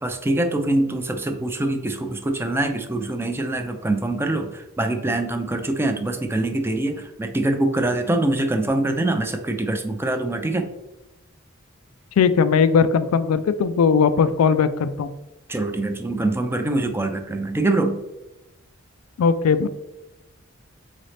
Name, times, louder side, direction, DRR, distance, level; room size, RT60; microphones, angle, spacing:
voice 1, 0.0-10.7 15.5-18.0, right 2 dB, 10° right, 6 dB, 0.4 m, -24 dB
voice 2, 12.2-15.1 19.2-19.7, left 6 dB, 90° left, 12 dB, 0.3 m, -18 dB
4.0 x 3.9 x 3.3 m, 0.95 s
head